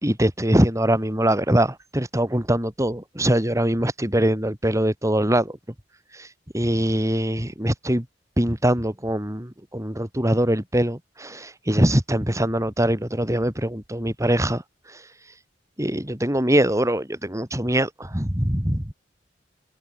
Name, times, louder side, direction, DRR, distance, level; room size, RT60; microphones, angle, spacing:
voice 1, 0.0-5.6 6.1-6.3 6.5-8.1 8.4-14.6 14.9-15.0 15.8-18.9, right 1 dB, 15° right, 3.3 m, -22 dB
head